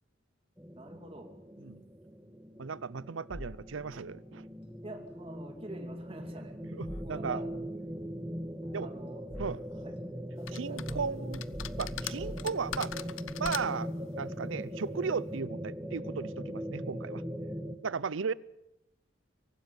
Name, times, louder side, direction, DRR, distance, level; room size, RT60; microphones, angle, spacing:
sound 1, 0.6-17.8, equal, 10° right, 1.4 m, -40 dB
voice 1, 0.8-1.3 4.8-6.6 7.0-7.5 8.8-9.2 9.8-9.9 10.4-11.1, right 1 dB, 30° right, 2.5 m, -46 dB
voice 2, 2.6-4.5 6.7-7.4 8.7-8.9 9.4-9.6 10.5-11.4 11.8-12.9 13.4-17.2 17.8-18.3, right 5 dB, 80° right, 0.6 m, -36 dB
sound 2, 3.3-4.2 6.8-7.7 8.6-9.9 10.8-13.1, equal, 60° left, 4.2 m, -46 dB
Xbox One Controller Button Mashing, 10.5-10.9 11.3-13.9, left 10 dB, 85° left, 0.8 m, -40 dB
23.5 x 12.5 x 9.3 m
head